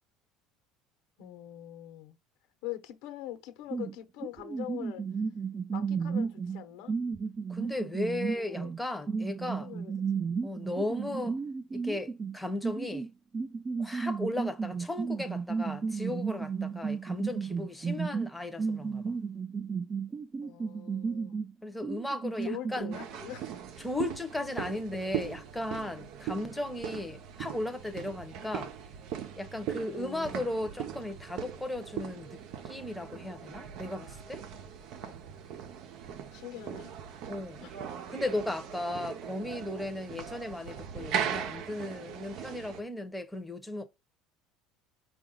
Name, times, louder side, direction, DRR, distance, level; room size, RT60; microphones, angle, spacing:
voice 1, 1.2-2.2 2.6-5.1 5.7-6.9 8.3-8.7 9.6-10.3 20.4-21.4 22.4-23.5 29.9-30.5 36.3-36.9 37.6-37.7 40.5-40.6, left 12 dB, 75° left, 1.0 m, -43 dB
sound 1, 3.7-4.0 4.2-8.8 9.1-12.4 12.6-21.5 21.8-23.0, right 5 dB, 25° right, 0.4 m, -33 dB
voice 2, 7.5-9.7 10.4-11.4 11.7-13.1 13.8-19.2 21.6-22.9 23.8-28.7 29.4-32.4 32.6-34.4 37.3-37.6 38.1-43.8, left 1 dB, 5° left, 0.9 m, -36 dB
sound 2, 22.9-42.8, right 9 dB, 65° right, 0.8 m, -39 dB
4.7 x 2.5 x 3.8 m
supercardioid pair, 100°, 0 cm